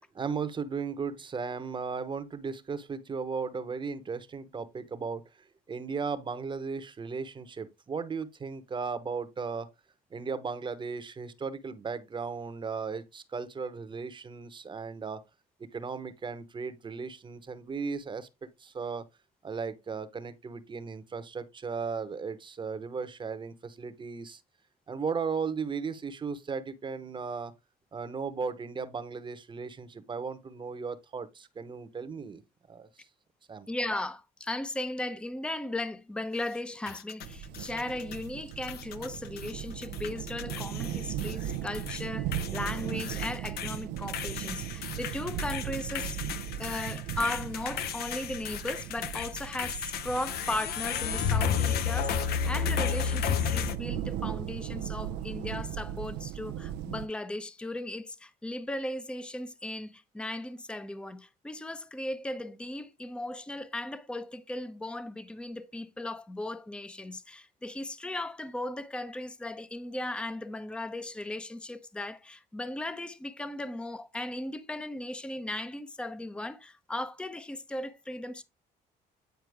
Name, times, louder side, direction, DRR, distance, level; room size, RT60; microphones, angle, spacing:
voice 1, 0.1-5.2 5.7-9.7 10.1-15.2 15.7-19.0 19.4-24.4 24.9-27.5 27.9-32.4 32.7-32.9 33.5-33.7, right 5 dB, 30° right, 0.9 m, -36 dB
voice 2, 33.7-46.2 46.6-78.4, left 1 dB, 5° left, 0.6 m, -37 dB
sound 1, 36.9-38.3 38.6-39.5 39.8-42.0 42.3-53.8, left 8 dB, 70° left, 0.7 m, -33 dB
sound 2, 37.2-57.1, right 11 dB, 90° right, 0.5 m, -38 dB
9.4 x 4.4 x 3.4 m
cardioid pair, 110°, 17 cm